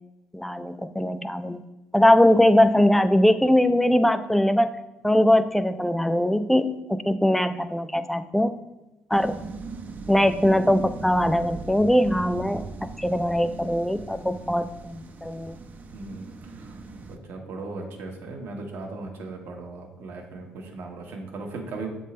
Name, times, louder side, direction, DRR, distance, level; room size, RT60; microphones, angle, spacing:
voice 1, 0.3-1.6 1.9-4.7 5.0-8.5 9.1-9.4 10.1-15.6, left 1 dB, 5° left, 11 dB, 0.4 m, -21 dB
sound 1, 9.1-17.2, right 3 dB, 45° right, 0.6 m, -39 dB
voice 2, 15.9-16.8 17.1-21.9, right 3 dB, 70° right, 2 dB, 1.2 m, -37 dB
7.3 x 3.7 x 4.2 m, 1.0 s
supercardioid pair, 70°, 4 cm